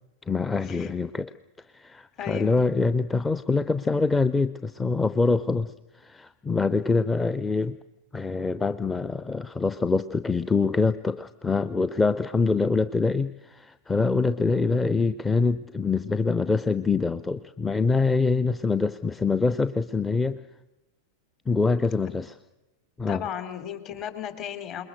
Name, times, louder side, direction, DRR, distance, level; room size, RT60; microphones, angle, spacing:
voice 1, 0.3-1.3 1.7-7.8 8.1-20.4 21.5-22.3 23.0-23.2, left 4 dB, 10° left, 13 dB, 0.7 m, -25 dB
voice 2, 2.2-2.6 22.0-22.1 23.1-24.8, left 9 dB, 35° left, 10 dB, 3.2 m, -35 dB
28.0 x 21.5 x 6.5 m, 1.0 s
figure-of-eight pair, 90°, 0 cm